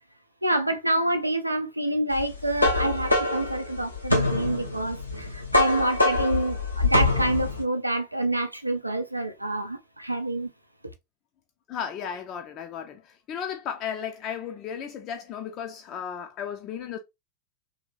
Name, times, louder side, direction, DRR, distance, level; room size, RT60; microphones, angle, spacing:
voice 1, 0.4-10.5, right 1 dB, 85° right, 0.4 m, -27 dB
sound 1, 2.2-7.6, left 2 dB, 85° left, 0.8 m, -25 dB
voice 2, 11.7-17.0, left 8 dB, 35° left, 0.4 m, -35 dB
2.9 x 2.7 x 2.4 m
figure-of-eight pair, 90°, 0 cm